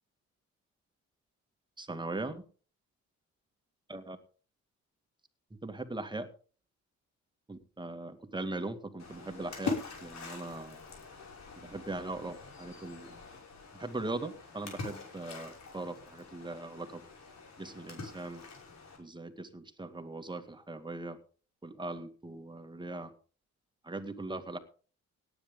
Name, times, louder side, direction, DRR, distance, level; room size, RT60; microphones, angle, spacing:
voice 1, 1.8-2.4 3.9-4.2 5.6-6.3 7.5-10.8 11.6-13.2 13.7-17.0 17.6-18.4 19.0-21.2 21.6-23.1 23.8-24.6, right 2 dB, 15° right, 7 dB, 2.1 m, -40 dB
Splash splatter, 9.0-19.0, left 4 dB, 60° left, 6.0 m, -43 dB
17.5 x 9.9 x 3.8 m, 0.39 s
cardioid pair, 90°, 30 cm